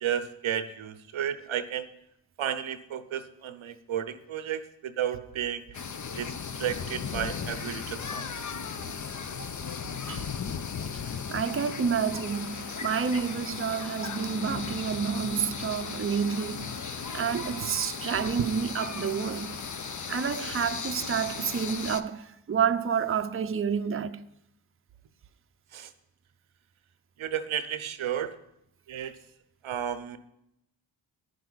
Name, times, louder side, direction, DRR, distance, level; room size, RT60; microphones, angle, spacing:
voice 1, 0.0-1.9 2.4-5.6 6.2-8.3 18.4-18.5 25.7-25.9 27.2-28.3 28.9-29.2 29.6-30.2, right 9 dB, 80° right, 0.8 m, -32 dB
sound 1, 5.7-22.0, left 6 dB, 40° left, 0.7 m, -36 dB
voice 2, 11.3-16.7 17.1-19.6 20.1-24.2, right 6 dB, 25° right, 0.6 m, -29 dB
sound 2, 12.2-22.0, left 2 dB, 60° left, 4.7 m, -48 dB
10.0 x 10.0 x 4.0 m
cardioid pair, 50°, 48 cm